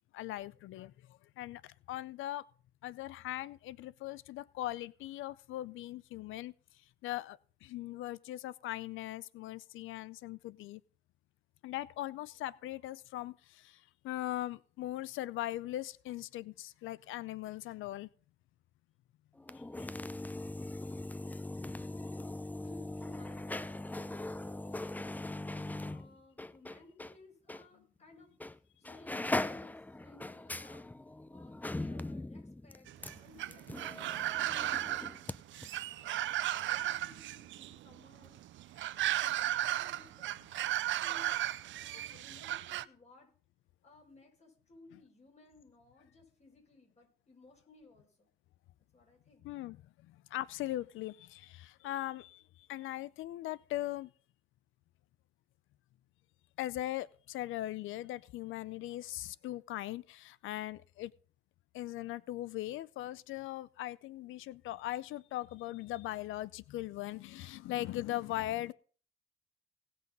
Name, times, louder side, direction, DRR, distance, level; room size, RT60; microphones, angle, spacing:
voice 1, 0.1-2.4 2.8-6.5 7.0-10.8 11.6-18.1 19.8-19.9 42.1-42.2 44.9-45.0 49.4-49.8 50.1-52.4 52.7-54.1 56.6-61.1 61.7-68.7, left 15 dB, 85° left, 0.5 m, -40 dB
sound 1, 19.4-27.2 27.5-27.6 28.4-28.6 28.8-35.4 35.6-35.7, left 2 dB, 10° left, 0.5 m, -40 dB
voice 2, 21.8-22.2 22.6-28.3 28.8-30.9 31.3-35.4 35.9-38.4 39.0-40.5 40.8-41.3 41.7-43.3 43.8-48.3 48.9-49.5, left 2 dB, 35° left, 5.6 m, -59 dB
sound 2, 32.9-42.8, right 13 dB, 70° right, 0.6 m, -35 dB
18.0 x 6.1 x 5.4 m
cardioid pair, 90°, 20 cm